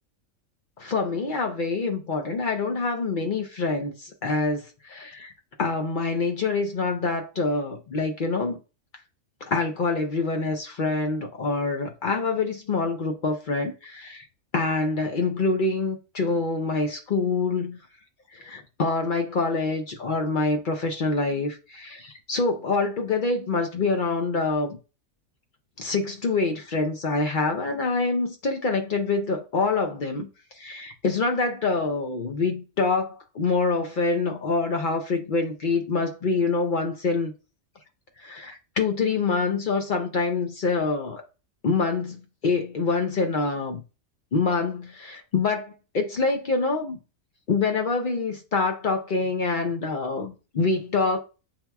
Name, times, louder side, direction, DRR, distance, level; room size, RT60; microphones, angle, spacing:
voice 1, 0.8-5.3 5.6-8.6 9.4-14.2 14.5-17.8 18.3-24.8 25.8-30.3 30.6-37.3 38.2-41.2 41.6-43.8 44.3-47.0 47.5-51.2, left 3 dB, 55° left, 0.5 m, -26 dB
7.4 x 2.9 x 2.3 m
omnidirectional pair, 1.5 m